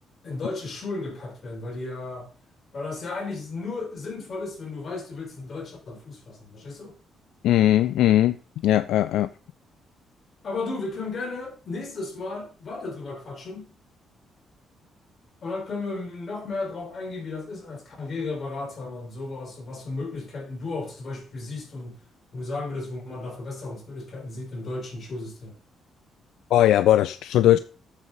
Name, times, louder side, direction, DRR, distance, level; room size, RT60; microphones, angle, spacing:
voice 1, 0.2-2.3 2.7-6.9 10.4-13.7 15.4-22.0 22.3-25.5, left 3 dB, 50° left, 3.9 m, -34 dB
voice 2, 7.4-8.4 8.6-9.3 26.5-27.6, left 13 dB, 85° left, 0.3 m, -19 dB
8.3 x 6.3 x 5.2 m
cardioid pair, 90°, 0 cm